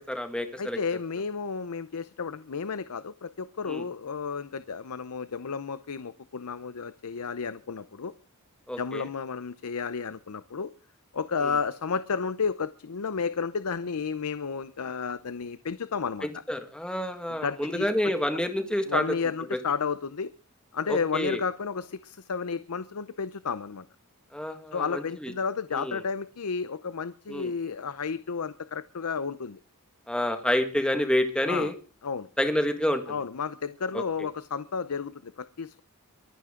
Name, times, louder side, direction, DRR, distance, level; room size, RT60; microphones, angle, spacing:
voice 1, 0.0-0.8 3.7-3.8 8.7-9.1 11.4-11.6 16.2-19.0 20.9-21.4 24.3-25.3 25.7-26.0 27.3-27.5 30.1-31.7 32.4-33.2 33.9-34.0, left 1 dB, 5° left, 7 dB, 1.7 m, -28 dB
voice 2, 0.6-8.1 8.8-10.7 11.1-16.3 17.4-18.1 18.9-20.3 20.7-23.8 24.7-29.6 31.5-31.7 32.0-32.3 33.1-35.8, left 5 dB, 80° left, 14 dB, 0.6 m, -32 dB
23.5 x 11.0 x 3.8 m, 0.36 s
head